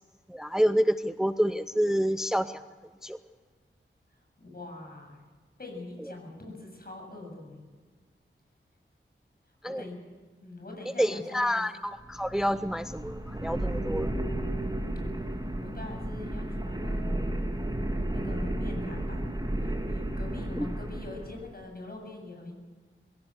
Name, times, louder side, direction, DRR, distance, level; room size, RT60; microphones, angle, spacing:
voice 1, 0.3-2.6 3.0-3.2 9.6-9.8 11.0-14.1 20.6-20.7, equal, ahead, 12 dB, 0.6 m, -28 dB
voice 2, 4.4-5.2 5.6-7.6 9.7-10.0 10.4-11.6 15.6-17.4 18.0-19.2 19.6-22.5, left 2 dB, 45° left, 1 dB, 7.6 m, -43 dB
sound 1, 11.9-21.5, right 1 dB, 20° right, 2.8 m, -33 dB
23.0 x 16.5 x 8.0 m, 1.4 s
wide cardioid pair, 60°, 21 cm